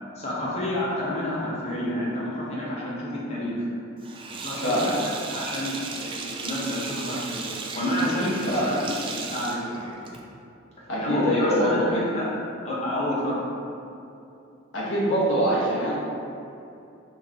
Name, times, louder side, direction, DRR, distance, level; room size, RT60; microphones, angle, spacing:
voice 1, 0.2-3.7 4.3-7.4 7.7-8.8 9.1-10.0 11.0-12.3 12.6-13.4, left 1 dB, 35° left, -6 dB, 1.0 m, -29 dB
Sink (filling or washing), 4.0-10.4, right 4 dB, 25° right, 0.3 m, -36 dB
voice 2, 4.6-4.9 8.5-8.7 10.9-12.1 14.7-15.9, equal, 70° left, -8 dB, 1.4 m, -23 dB
4.1 x 3.4 x 3.6 m, 2.7 s
head